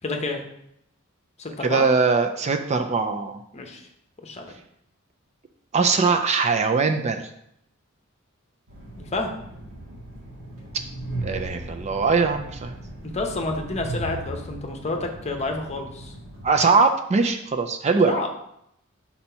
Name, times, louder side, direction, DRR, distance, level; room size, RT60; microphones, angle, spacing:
voice 1, 0.0-0.4 1.4-1.8 3.5-3.8 4.2-4.5 9.0-9.3 13.1-16.1 18.1-18.3, left 2 dB, 30° left, 3 dB, 0.9 m, -29 dB
voice 2, 1.6-3.4 5.7-7.3 11.2-12.7 16.4-18.1, right 4 dB, 30° right, 6 dB, 0.4 m, -21 dB
Train, 8.7-16.5, right 1 dB, 85° right, 1.9 m, -37 dB
4.3 x 4.2 x 5.5 m, 0.75 s
head